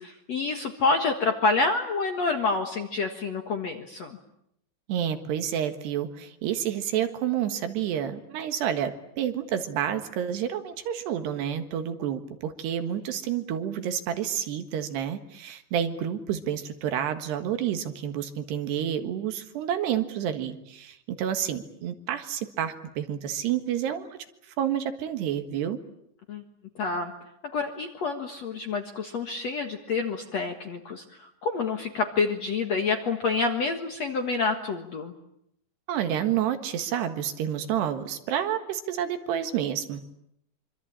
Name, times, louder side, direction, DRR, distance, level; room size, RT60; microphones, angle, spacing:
voice 1, 0.0-4.2 26.3-26.4 26.8-27.1 27.5-35.1, left 4 dB, 55° left, 5 dB, 2.0 m, -28 dB
voice 2, 4.9-24.2 24.5-25.8 35.9-40.0, right 9 dB, 70° right, 8 dB, 3.6 m, -29 dB
25.5 x 25.5 x 8.8 m, 0.75 s
omnidirectional pair, 5.1 m